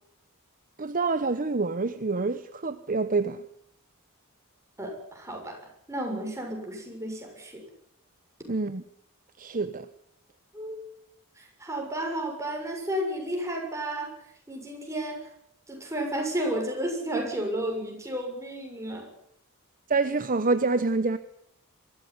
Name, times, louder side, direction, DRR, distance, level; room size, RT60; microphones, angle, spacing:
voice 1, 0.8-3.4 8.5-8.8 9.4-9.9 19.9-21.2, right 3 dB, 40° right, 0.9 m, -26 dB
voice 2, 4.8-7.6 10.5-10.8 11.4-14.1 14.5-15.3 15.7-19.1, right 1 dB, 15° right, 6.9 m, -32 dB
23.0 x 14.5 x 9.7 m
head